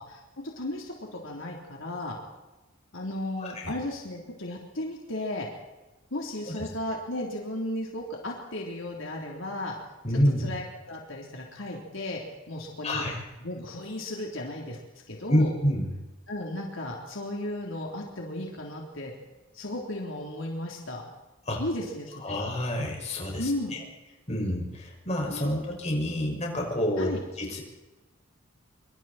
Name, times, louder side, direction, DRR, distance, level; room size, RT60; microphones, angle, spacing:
voice 1, 0.1-2.2 2.9-5.5 6.1-9.7 10.1-12.2 12.5-13.0 13.4-14.8 15.1-15.5 16.3-19.1 19.5-21.0 21.6-22.4 23.4-23.8 25.3-25.8 27.0-27.2, left 1 dB, 70° left, -1 dB, 3.8 m, -35 dB
voice 2, 3.4-3.7 10.0-10.5 12.8-13.1 15.3-15.9 21.5-21.6 22.2-23.8 24.3-27.1 27.4-27.6, equal, 35° left, 0 dB, 6.2 m, -27 dB
26.0 x 25.0 x 4.5 m, 1.1 s
head